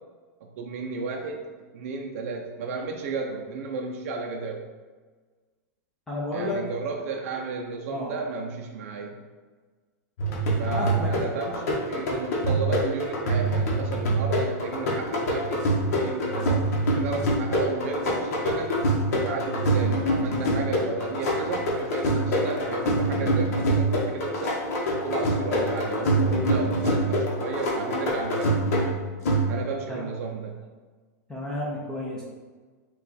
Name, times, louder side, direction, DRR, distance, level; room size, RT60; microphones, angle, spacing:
voice 1, 0.4-1.4 1.7-4.6 6.3-9.2 10.6-18.8 19.1-24.6 25.0-28.7 29.5-30.7, right 4 dB, 55° right, 1 dB, 0.5 m, -33 dB
voice 2, 6.1-6.6 7.9-8.1 10.7-11.2 29.9-30.0 31.3-32.2, left 1 dB, 5° left, -5 dB, 0.6 m, -31 dB
sound 1, 10.2-29.8, right 1 dB, 60° left, 1.1 m, -25 dB
5.4 x 2.4 x 4.0 m, 1.4 s
supercardioid pair, 165°, 9 cm